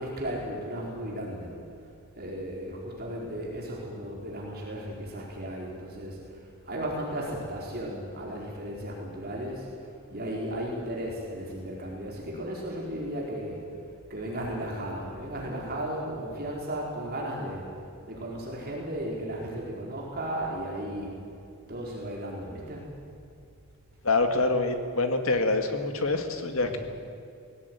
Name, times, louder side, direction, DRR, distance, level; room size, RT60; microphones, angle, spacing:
voice 1, 0.0-1.6 2.1-9.7 10.1-13.7 14.1-17.6 18.0-21.1 21.7-22.9 26.6-26.8, right 1 dB, 45° right, -2 dB, 4.2 m, -35 dB
voice 2, 24.0-26.8, left 3 dB, 70° left, 6 dB, 2.1 m, -26 dB
19.5 x 17.0 x 9.5 m, 2.4 s
head